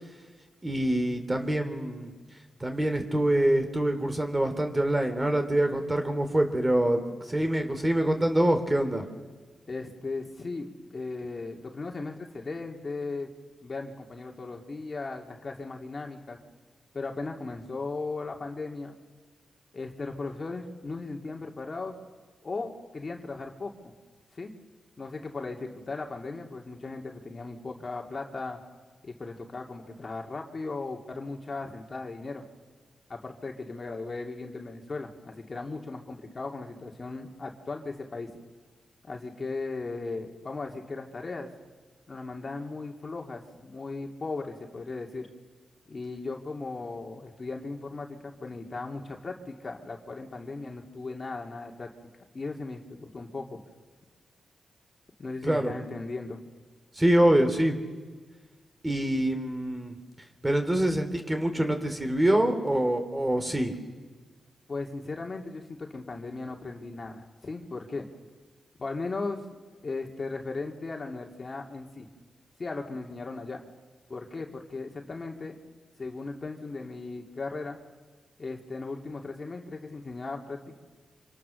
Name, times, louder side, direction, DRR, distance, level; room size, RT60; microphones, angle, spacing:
voice 1, 0.6-2.1 2.6-9.0 55.4-55.7 56.9-57.8 58.8-60.0 60.4-63.8, right 1 dB, 20° right, 6 dB, 3.1 m, -25 dB
voice 2, 9.7-13.3 13.6-16.4 16.9-19.0 19.7-21.9 22.4-23.9 24.3-24.5 25.0-28.6 29.0-32.4 33.1-38.3 39.0-41.5 42.1-45.3 45.9-51.9 52.3-53.6 55.2-56.4 64.7-68.1 68.8-69.4 69.8-72.1 72.6-73.6 74.1-75.6 76.0-77.8 78.4-80.8, left 3 dB, 45° left, 2 dB, 2.5 m, -37 dB
25.5 x 25.5 x 6.5 m, 1.4 s
cardioid pair, 55°, 0 cm